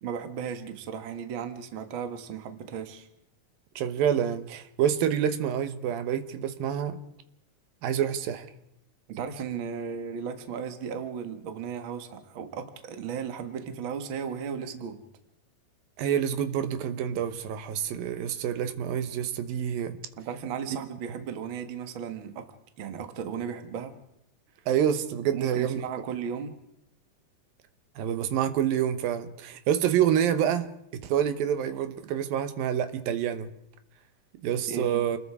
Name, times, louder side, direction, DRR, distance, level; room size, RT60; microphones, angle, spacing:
voice 1, 0.0-3.1 9.1-15.0 20.2-22.5 22.8-23.9 25.3-26.6 34.7-35.0, right 7 dB, 45° right, 7 dB, 1.8 m, -35 dB
voice 2, 3.8-7.0 7.8-8.5 16.0-20.0 24.7-25.8 28.0-33.5 34.4-35.2, right 9 dB, 80° right, 10 dB, 2.9 m, -27 dB
28.5 x 20.5 x 4.9 m, 0.81 s
omnidirectional pair, 4.1 m